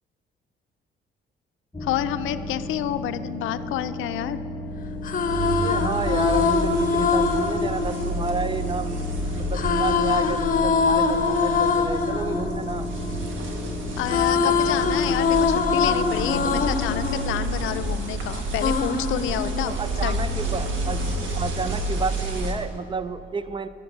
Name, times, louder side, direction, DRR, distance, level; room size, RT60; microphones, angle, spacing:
sound 1, 1.7-16.7, left 2 dB, 10° left, 0.9 m, -34 dB
voice 1, 1.8-4.4 14.0-19.8 20.0-20.2, left 12 dB, 85° left, 12 dB, 0.5 m, -29 dB
sound 2, 4.9-8.9 9.5-13.6 13.9-18.1 18.6-20.0, left 5 dB, 45° left, 0.7 m, -24 dB
sound 3, 5.3-22.5, right 1 dB, 75° right, 1.6 m, -30 dB
voice 2, 5.6-9.0 9.4-12.9 19.6-23.7, right 4 dB, 25° right, 13 dB, 0.4 m, -30 dB
11.0 x 7.1 x 7.2 m, 2.8 s
cardioid pair, 90°, 20 cm